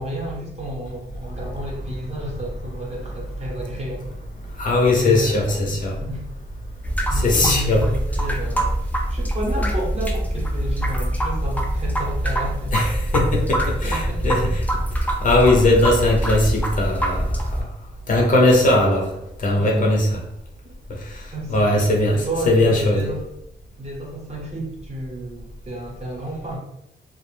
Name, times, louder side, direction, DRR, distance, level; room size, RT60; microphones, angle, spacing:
voice 1, 0.0-4.1 4.9-6.2 7.1-12.8 13.7-14.6 19.6-20.0 20.6-20.7 21.3-21.9 22.1-23.3 23.8-26.6, right 1 dB, 35° right, -3 dB, 0.7 m, -31 dB
voice 2, 4.6-5.9 7.1-7.8 12.7-14.6 15.2-17.3 18.1-19.1 19.4-20.1 21.5-23.1, left 2 dB, 45° left, -2 dB, 0.6 m, -19 dB
sound 1, 6.8-17.6, right 1 dB, 10° left, 0.3 m, -24 dB
2.4 x 2.0 x 3.2 m, 0.80 s
wide cardioid pair, 145°, 18 cm